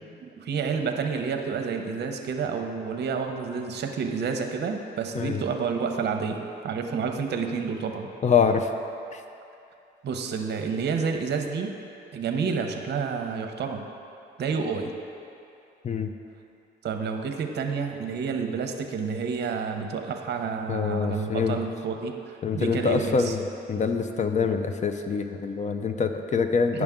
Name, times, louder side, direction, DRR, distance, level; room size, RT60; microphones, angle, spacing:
voice 1, 0.2-8.1 10.0-11.7 12.1-13.8 14.4-14.9 16.8-23.3 26.7-26.8, right 5 dB, 60° right, 5 dB, 0.7 m, -29 dB
voice 2, 8.2-8.7 9.1-9.2 15.8-16.1 20.7-21.6 22.4-26.8, left 5 dB, 35° left, 7 dB, 0.5 m, -25 dB
8.8 x 6.1 x 3.6 m, 2.6 s
cardioid pair, 90°, 20 cm